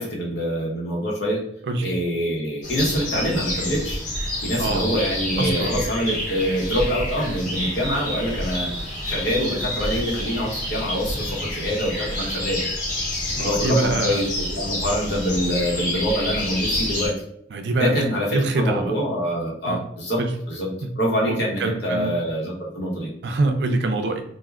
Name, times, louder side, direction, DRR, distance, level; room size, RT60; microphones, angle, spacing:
voice 1, 0.0-1.4 1.8-4.0 4.4-11.2 11.5-12.6 13.4-17.1 17.8-20.2 20.5-20.7 21.0-23.1, equal, 75° left, -3 dB, 0.9 m, -25 dB
sound 1, 2.6-17.1, left 1 dB, 45° left, 0.9 m, -28 dB
voice 2, 4.6-5.0 5.4-5.8 13.4-14.2 17.5-18.0 18.3-18.9 19.7-19.8 20.2-20.3 20.8-20.9 21.2-22.1 23.2-24.2, right 2 dB, 75° right, 6 dB, 0.4 m, -24 dB
3.3 x 2.1 x 2.3 m, 0.71 s
head